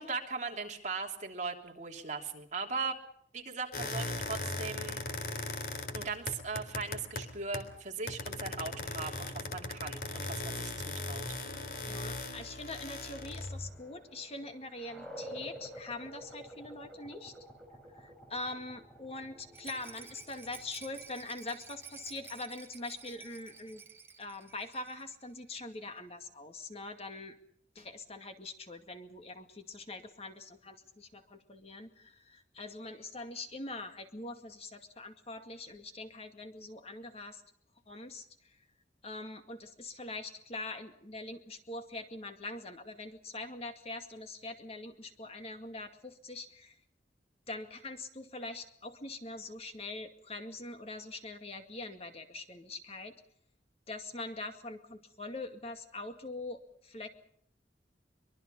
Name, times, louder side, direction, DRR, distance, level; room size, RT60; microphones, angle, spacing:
voice 1, 0.0-3.0 3.3-5.0 5.9-11.2, right 4 dB, 40° right, 2 dB, 3.2 m, -39 dB
sound 1, 3.7-7.8 8.1-13.7, left 2 dB, 55° left, 3.5 m, -38 dB
voice 2, 11.8-17.3 17.9-23.8 24.2-27.4 27.8-37.4 37.9-38.6 39.0-46.8 47.5-53.1 53.9-57.1, left 2 dB, 35° left, 7 dB, 2.2 m, -43 dB
sound 2, 12.6-23.8, equal, 5° left, 4.5 m, -51 dB
Rattle, 19.5-25.2 25.5-25.6 25.8-25.9, right 5 dB, 15° right, 2.3 m, -52 dB
24.5 x 23.0 x 5.5 m, 0.65 s
head